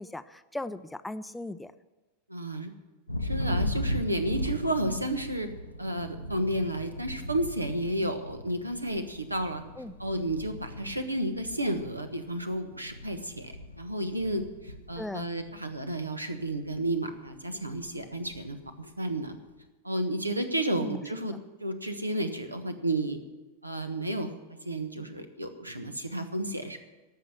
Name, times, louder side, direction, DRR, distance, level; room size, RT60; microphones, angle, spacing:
voice 1, 0.0-1.7 9.8-9.9 15.0-15.3 20.7-21.0, left 2 dB, 5° left, 13 dB, 0.5 m, -38 dB
voice 2, 2.3-2.7 3.2-5.5 5.8-9.6 10.0-19.4 19.8-21.3 21.6-23.2 23.6-24.3 24.6-26.8, right 1 dB, 85° right, 8 dB, 1.2 m, -32 dB
Thunder, 3.1-16.0 16.3-16.9 17.2-18.7, left 1 dB, 85° left, 0.8 m, -38 dB
14.5 x 5.9 x 10.0 m, 1.2 s
figure-of-eight pair, 90°, 0 cm